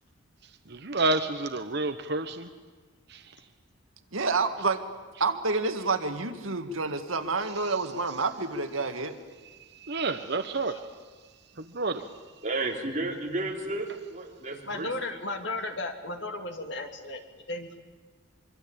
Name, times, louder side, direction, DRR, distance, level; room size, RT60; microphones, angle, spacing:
voice 1, 0.4-2.5 3.1-3.4 7.4-7.8 9.6-10.9 11.6-12.1, right 3 dB, 50° right, 8 dB, 1.0 m, -30 dB
voice 2, 4.1-4.8 5.2-9.2, right 3 dB, 80° right, 8 dB, 1.9 m, -28 dB
voice 3, 12.4-14.9, right 2 dB, 35° right, 0 dB, 3.8 m, -32 dB
voice 4, 14.6-17.2 17.5-17.8, left 2 dB, 55° left, 6 dB, 2.5 m, -34 dB
24.5 x 24.5 x 8.8 m, 1.4 s
head